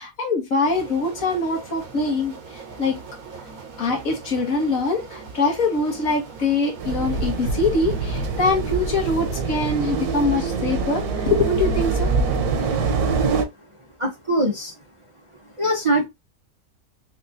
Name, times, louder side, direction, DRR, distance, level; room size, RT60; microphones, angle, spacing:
voice 1, 0.0-3.0 3.8-12.1, left 3 dB, 65° left, 1.8 m, -23 dB
sound 1, 0.6-9.0, right 5 dB, 70° right, 1.6 m, -40 dB
sound 2, 6.8-13.4, right 4 dB, 90° right, 1.3 m, -24 dB
voice 2, 14.0-14.7 15.6-16.1, right 1 dB, 25° right, 0.8 m, -22 dB
4.5 x 3.1 x 2.6 m
omnidirectional pair, 1.5 m